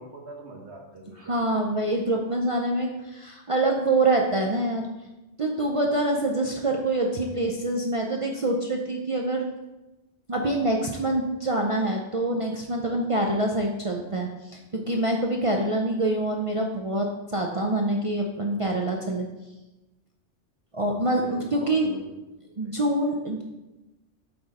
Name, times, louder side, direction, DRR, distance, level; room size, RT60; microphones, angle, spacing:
voice 1, 0.0-1.3 21.1-22.1 22.5-22.7, right 2 dB, 65° right, 1 dB, 1.2 m, -42 dB
voice 2, 1.2-4.9 5.4-9.5 10.3-19.3 20.7-21.9 22.6-23.4, right 2 dB, 50° right, 1 dB, 0.4 m, -25 dB
7.7 x 3.9 x 4.1 m, 1.1 s
omnidirectional pair, 1.2 m